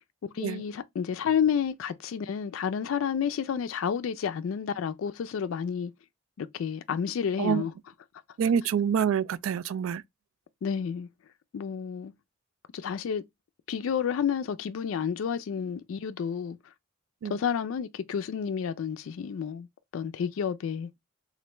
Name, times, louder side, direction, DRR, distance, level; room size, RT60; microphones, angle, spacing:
voice 1, 0.3-5.9 6.4-7.7 10.6-11.1 11.5-12.1 12.7-13.2 13.7-16.6 17.3-19.7 19.9-20.9, left 7 dB, 75° left, 0.3 m, -30 dB
voice 2, 8.4-10.0 17.2-17.4, right 7 dB, 80° right, 0.3 m, -26 dB
3.2 x 2.5 x 3.0 m
head